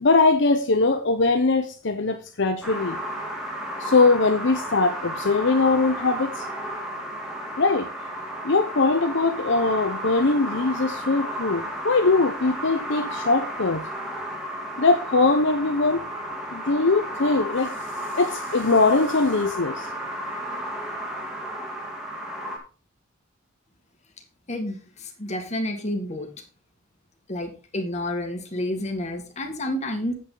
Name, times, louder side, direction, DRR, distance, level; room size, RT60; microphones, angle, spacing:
voice 1, 0.0-3.0 3.8-6.5 7.6-7.9 8.4-13.8 14.8-16.0 16.5-17.7 18.2-19.9, left 3 dB, 65° left, 0.8 m, -21 dB
sound 1, 2.6-22.6, equal, 5° right, 2.5 m, -33 dB
voice 2, 24.5-26.3 27.3-30.1, left 1 dB, 35° left, 2.0 m, -30 dB
8.4 x 8.4 x 3.9 m
head